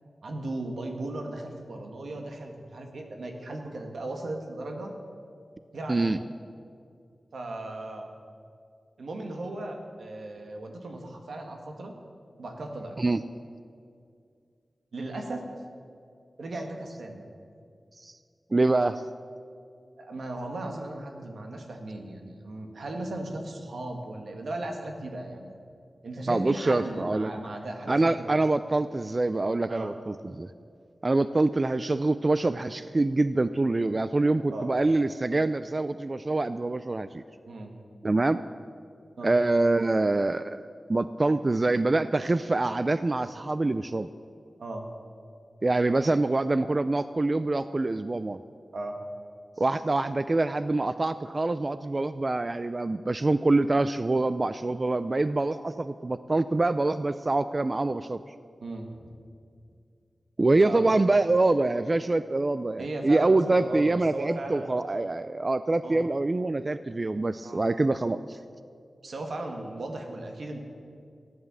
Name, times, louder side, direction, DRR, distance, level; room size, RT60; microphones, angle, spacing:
voice 1, 0.2-5.0 5.7-6.1 7.3-8.1 9.0-11.9 12.4-13.0 14.9-15.4 16.4-17.3 20.0-25.5 26.0-28.3 29.7-29.9 34.5-34.7 37.5-37.7 39.2-39.3 44.6-44.8 48.7-49.0 58.6-59.1 60.6-60.8 62.8-64.7 65.8-66.1 67.4-67.6 69.0-70.6, right 2 dB, 80° right, 3 dB, 1.9 m, -37 dB
voice 2, 5.9-6.2 13.0-13.2 18.0-18.2 18.5-19.0 26.3-27.3 27.9-30.5 31.0-37.2 38.0-38.4 39.2-44.1 45.6-48.4 49.6-58.3 60.4-68.4, right 2 dB, 35° right, 13 dB, 0.4 m, -25 dB
14.5 x 10.5 x 7.4 m, 2.3 s
wide cardioid pair, 85°, 0 cm